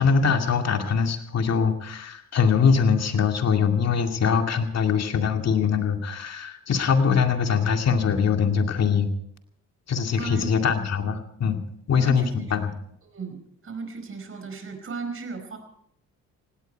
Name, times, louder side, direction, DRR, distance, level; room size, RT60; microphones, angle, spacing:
voice 1, 0.0-9.1 9.9-11.6 11.9-12.3 12.5-12.7, left 6 dB, 60° left, 5 dB, 2.3 m, -22 dB
voice 2, 10.2-10.6 11.9-12.6 13.1-15.6, right 4 dB, 45° right, 6 dB, 5.0 m, -36 dB
18.0 x 17.0 x 4.6 m, 0.71 s
cardioid pair, 90°, 30 cm